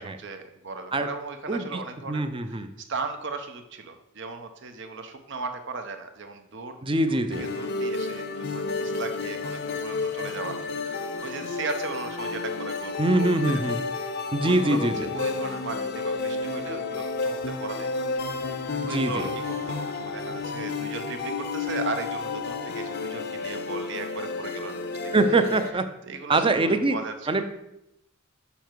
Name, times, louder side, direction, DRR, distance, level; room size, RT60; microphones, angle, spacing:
voice 1, 0.0-2.6 2.9-6.8 7.1-13.6 14.0-14.1 14.4-14.9 15.1-18.1 18.4-18.5 18.8-25.1 26.0-27.4, right 4 dB, 60° right, 7 dB, 0.9 m, -37 dB
voice 2, 1.5-1.8 2.1-2.7 6.8-7.5 13.0-13.8 14.3-15.1 18.8-19.3 25.1-25.9 26.3-27.0 27.3-27.4, right 2 dB, 25° right, 9 dB, 0.6 m, -23 dB
sound 1, 7.3-25.7, left 3 dB, 50° left, 0.6 m, -31 dB
7.1 x 5.6 x 4.6 m, 0.84 s
head